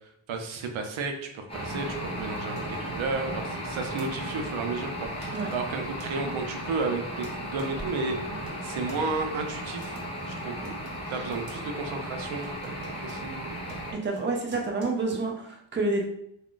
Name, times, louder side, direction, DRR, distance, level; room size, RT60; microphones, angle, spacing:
voice 1, 0.3-10.0 10.3-10.6 11.1-13.5, right 3 dB, 90° right, 4 dB, 0.6 m, -33 dB
sound 1, 1.5-13.9, equal, 15° left, 0.7 m, -35 dB
sound 2, 2.2-4.1 4.9-5.0 5.2-6.1 6.8-7.7 8.2-9.0 9.7-11.6 11.9-12.1 12.4-15.2, right 1 dB, 50° right, 1.1 m, -49 dB
voice 2, 14.0-16.0, right 3 dB, 25° right, 1 dB, 0.5 m, -29 dB
2.4 x 2.2 x 3.7 m, 0.73 s
wide cardioid pair, 140°, 46 cm